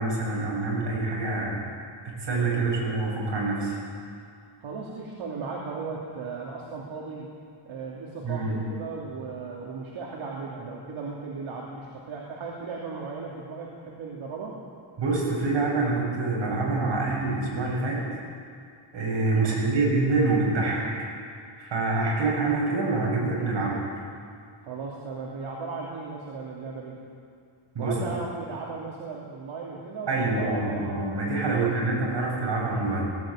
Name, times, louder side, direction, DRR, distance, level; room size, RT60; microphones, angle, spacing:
voice 1, 0.0-1.6 2.0-3.7 8.2-8.6 15.0-18.0 18.9-21.1 21.6-23.9 27.7-28.0 30.1-33.1, right 3 dB, 60° right, -3 dB, 7.7 m, -26 dB
voice 2, 4.6-7.3 7.7-14.6 19.5-19.6 24.6-27.0 27.8-30.8 31.5-31.9, right 4 dB, 75° right, -3 dB, 3.0 m, -36 dB
18.5 x 16.5 x 8.9 m, 2.3 s
cardioid pair, 130°, 48 cm